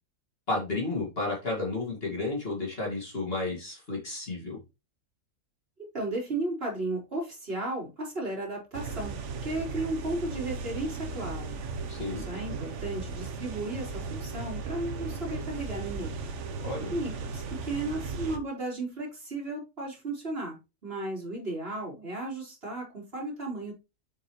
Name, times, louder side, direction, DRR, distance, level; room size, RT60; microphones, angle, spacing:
voice 1, 0.5-4.6 11.9-12.2 16.6-16.9, left 3 dB, 40° left, -2 dB, 2.2 m, -32 dB
voice 2, 5.9-11.5 11.8-16.2 16.9-23.7, right 2 dB, 40° right, -3 dB, 4.0 m, -34 dB
sound 1, 8.7-18.4, right 4 dB, 60° right, 1.1 m, -36 dB
7.9 x 5.9 x 3.0 m, 0.27 s
omnidirectional pair, 1.6 m